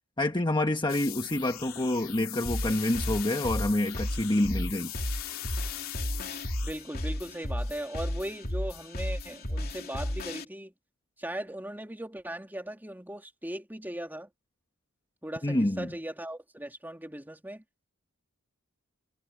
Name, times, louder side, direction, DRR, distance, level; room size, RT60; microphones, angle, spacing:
voice 1, 0.2-4.9 15.4-15.9, left 1 dB, 20° left, 1.3 m, -27 dB
sound 1, 0.9-6.7, left 13 dB, 65° left, 3.0 m, -40 dB
sound 2, 2.4-10.4, left 1 dB, 45° left, 3.1 m, -34 dB
voice 2, 6.6-10.7 11.2-14.3 15.2-17.9, right 1 dB, 10° right, 2.9 m, -38 dB
head